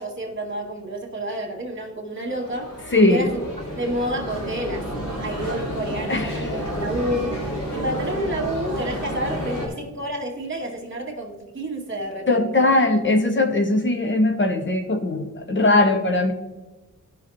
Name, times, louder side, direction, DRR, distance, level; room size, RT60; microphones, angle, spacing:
voice 1, 0.0-2.8 3.1-3.3 3.8-4.9 5.2-7.4 7.7-12.7, right 1 dB, 40° right, 0 dB, 2.4 m, -29 dB
sound 1, 2.2-9.7, equal, 75° left, 3.1 m, -30 dB
voice 2, 2.9-3.3 6.1-6.5 12.3-16.3, left 2 dB, 40° left, 5 dB, 0.9 m, -20 dB
16.0 x 5.9 x 2.9 m, 1.2 s
wide cardioid pair, 75°, 31 cm